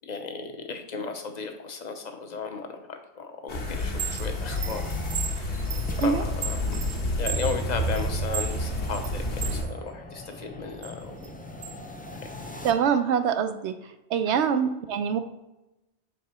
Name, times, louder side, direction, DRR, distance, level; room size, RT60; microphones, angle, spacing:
voice 1, 0.0-5.0 5.3-5.7 6.0-6.8 7.2-11.1 12.5-12.7 14.3-14.4, left 4 dB, 45° left, 5 dB, 0.8 m, -35 dB
sound 1, 3.5-9.6, left 1 dB, 90° left, 1.5 m, -29 dB
Chime, 3.8-9.7 10.1-11.8, right 9 dB, 55° right, 0.5 m, -36 dB
sound 2, 4.2-12.7, left 2 dB, 15° left, 0.3 m, -42 dB
voice 2, 12.6-13.7 14.1-15.2, right 7 dB, 90° right, 10 dB, 0.9 m, -24 dB
6.8 x 3.7 x 4.3 m, 0.97 s
omnidirectional pair, 1.1 m